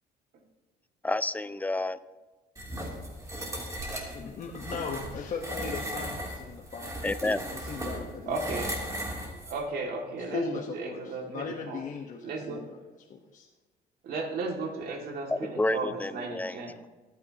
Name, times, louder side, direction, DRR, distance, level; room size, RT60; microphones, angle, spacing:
voice 1, 1.0-2.0 7.0-7.4 15.3-16.9, left 2 dB, 10° left, 14 dB, 0.5 m, -30 dB
sound 1, 2.6-9.6, right 1 dB, 20° right, 3.0 m, -37 dB
voice 2, 4.1-7.0 7.5-8.4 10.2-12.8 13.1-13.5, left 5 dB, 50° left, 0 dB, 1.2 m, -38 dB
voice 3, 8.3-8.7 9.5-11.8 12.2-12.7 14.0-16.8, right 3 dB, 65° right, 2 dB, 2.2 m, -35 dB
24.5 x 9.6 x 2.9 m, 1.3 s
cardioid pair, 110°, 17 cm